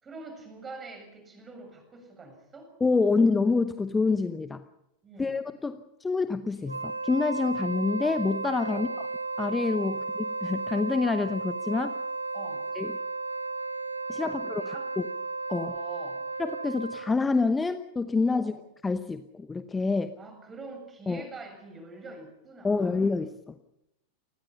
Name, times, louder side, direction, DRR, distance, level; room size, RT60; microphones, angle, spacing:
voice 1, 0.0-2.7 5.0-5.4 8.7-8.9 9.8-10.0 12.3-12.7 14.2-14.9 15.5-16.3 18.3-18.6 20.2-23.2, right 3 dB, 20° right, 5 dB, 7.5 m, -45 dB
voice 2, 2.8-4.6 5.2-8.9 9.4-11.9 12.7-12.9 14.1-15.1 15.5-15.7 16.4-18.5 18.8-20.1 21.1-21.2 22.6-23.6, left 4 dB, 10° left, 11 dB, 0.9 m, -27 dB
Wind instrument woodwind instrument, 6.6-17.2, right 3 dB, 85° right, 1.2 m, -34 dB
28.0 x 20.5 x 5.7 m, 0.87 s
figure-of-eight pair, 90°, 0 cm